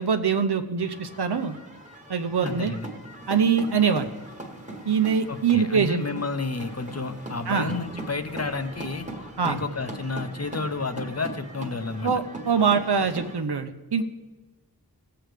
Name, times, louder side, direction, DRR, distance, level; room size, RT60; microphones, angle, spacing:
voice 1, 0.0-1.5 2.1-2.7 3.3-4.1 4.8-6.1 7.5-7.7 9.4-9.6 12.0-14.0, right 6 dB, 85° right, 7 dB, 0.8 m, -23 dB
sound 1, 0.8-13.4, right 1 dB, 20° right, 1.4 m, -40 dB
voice 2, 2.4-2.9 5.3-9.1 9.4-12.1, left 3 dB, 40° left, 9 dB, 0.7 m, -31 dB
17.5 x 7.8 x 3.4 m, 1.2 s
wide cardioid pair, 60°, 39 cm